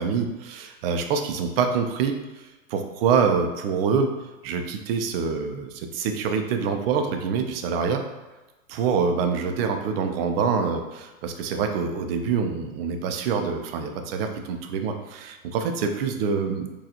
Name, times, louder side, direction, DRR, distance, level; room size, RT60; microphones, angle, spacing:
voice 1, 0.0-4.1 4.4-8.0 8.7-16.7, right 6 dB, 45° right, 5 dB, 0.5 m, -26 dB
4.0 x 2.4 x 2.7 m, 1.1 s
hypercardioid pair, 130°, 41 cm